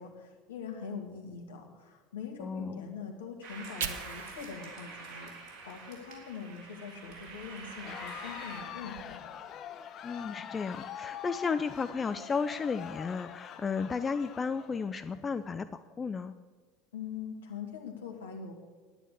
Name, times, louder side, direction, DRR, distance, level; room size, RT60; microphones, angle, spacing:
voice 1, 0.0-5.3 5.7-9.2 16.9-18.5, left 6 dB, 70° left, 2 dB, 2.1 m, -43 dB
voice 2, 2.4-2.8 10.0-16.3, left 5 dB, 25° left, 12 dB, 0.5 m, -33 dB
sound 1, 3.4-8.6, right 3 dB, 45° right, 3.5 m, -46 dB
Fire, 3.4-6.6 7.0-9.0, right 8 dB, 65° right, 1.0 m, -45 dB
Crowd, 7.7-15.2, left 9 dB, 40° left, 0.8 m, -44 dB
10.0 x 9.9 x 8.2 m, 1.4 s
figure-of-eight pair, 75°, 0 cm